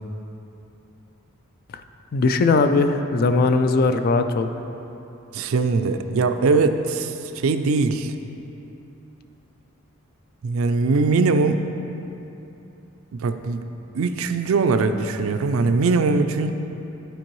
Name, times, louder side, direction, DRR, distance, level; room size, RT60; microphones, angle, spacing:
voice 1, 2.1-4.5, left 3 dB, 45° left, 9 dB, 0.3 m, -19 dB
voice 2, 5.3-8.1 10.4-11.6 13.1-13.6 13.9-16.5, right 4 dB, 70° right, 9 dB, 0.4 m, -21 dB
11.5 x 4.5 x 3.1 m, 2.9 s
head